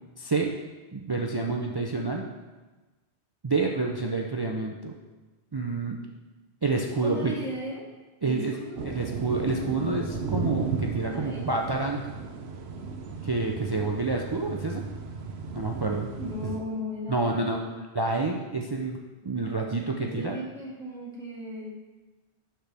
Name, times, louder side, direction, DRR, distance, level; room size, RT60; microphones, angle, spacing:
voice 1, 0.2-0.5 0.9-2.2 3.4-4.9 5.5-6.0 6.6-7.3 8.2-12.0 13.2-14.8 15.5-16.1 17.1-17.6 17.9-19.0 19.2-20.4, right 3 dB, 40° right, 1 dB, 0.3 m, -28 dB
voice 2, 7.0-7.8 8.2-8.9 11.1-11.5 16.2-17.7 20.0-21.7, left 1 dB, 5° left, -8 dB, 2.3 m, -36 dB
sound 1, 8.8-16.6, right 4 dB, 75° right, 0.9 m, -34 dB
11.5 x 4.4 x 3.5 m, 1.2 s
omnidirectional pair, 1.1 m